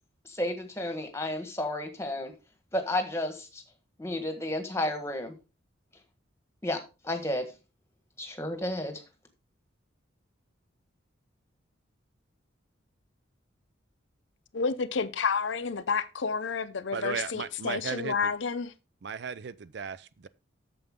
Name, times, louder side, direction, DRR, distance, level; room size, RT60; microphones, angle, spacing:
voice 1, 0.2-2.3 2.7-3.6 4.0-5.3 6.6-7.5 8.2-9.0, left 1 dB, 15° left, 1.4 m, -32 dB
voice 2, 14.5-18.7, left 5 dB, 70° left, 0.6 m, -30 dB
voice 3, 16.9-18.2 19.0-20.3, right 6 dB, 55° right, 0.4 m, -35 dB
8.9 x 7.0 x 3.6 m
head